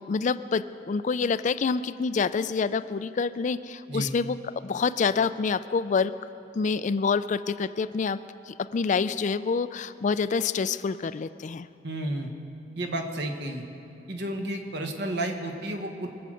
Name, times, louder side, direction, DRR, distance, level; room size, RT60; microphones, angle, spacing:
voice 1, 0.0-4.4 4.6-6.1 6.5-8.2 8.5-11.7, left 5 dB, 40° left, 14 dB, 0.3 m, -27 dB
voice 2, 11.8-12.3 12.7-13.6 14.1-16.1, right 1 dB, 65° right, 4 dB, 1.5 m, -31 dB
23.5 x 7.9 x 6.4 m, 2.6 s
head